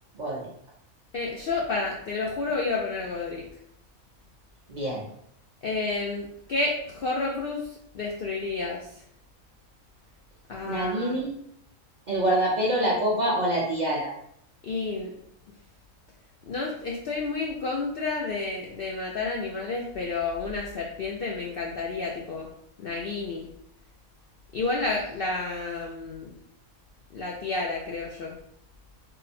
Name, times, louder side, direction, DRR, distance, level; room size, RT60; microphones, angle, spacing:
voice 1, 1.1-3.4 5.6-7.7 7.9-8.9 10.5-11.2 14.6-15.1 16.5-22.5 22.8-23.5 24.5-26.3 27.1-28.4, left 3 dB, 65° left, -2 dB, 0.5 m, -30 dB
voice 2, 4.7-5.0 10.6-11.3 12.1-14.1, right 1 dB, 45° right, -5 dB, 0.6 m, -25 dB
3.7 x 2.1 x 4.1 m, 0.71 s
omnidirectional pair, 1.5 m